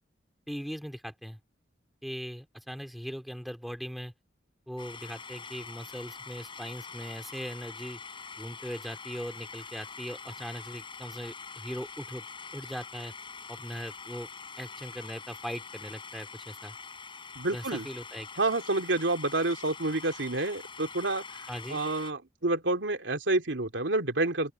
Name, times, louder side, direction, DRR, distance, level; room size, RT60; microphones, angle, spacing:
voice 1, 0.5-1.4 2.0-4.1 4.7-8.0 8.4-12.3 12.5-13.1 13.5-14.3 14.6-16.8 17.5-18.3 21.5-21.8, equal, ahead, 2.9 m, -39 dB
sound 1, 4.8-22.1, left 5 dB, 30° left, 6.3 m, -44 dB
voice 2, 17.3-17.9 18.4-21.2 21.7-24.5, right 2 dB, 85° right, 2.9 m, -28 dB
open air
head